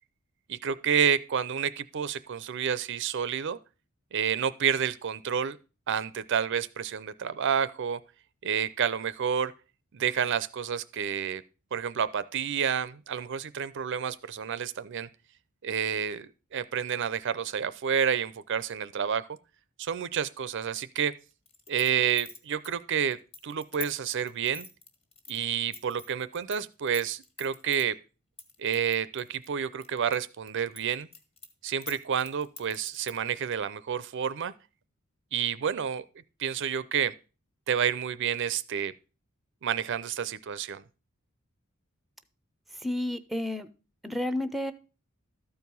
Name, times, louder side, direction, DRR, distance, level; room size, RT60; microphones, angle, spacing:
voice 1, 0.5-3.6 4.1-5.6 5.9-8.0 8.4-9.5 9.9-11.4 11.7-15.1 15.6-19.3 19.8-21.1 21.7-23.2 23.4-24.7 25.3-28.0 28.6-31.1 31.6-34.5 35.3-36.0 36.4-37.1 37.7-38.9 39.6-40.8, right 8 dB, 60° right, 0.5 m, -29 dB
sound 1, 21.5-26.6 26.9-27.8 28.4-30.2 30.5-33.3, left 4 dB, 30° left, 1.6 m, -44 dB
voice 2, 42.7-43.7 44.0-44.7, left 1 dB, ahead, 0.6 m, -31 dB
13.0 x 4.7 x 5.3 m
head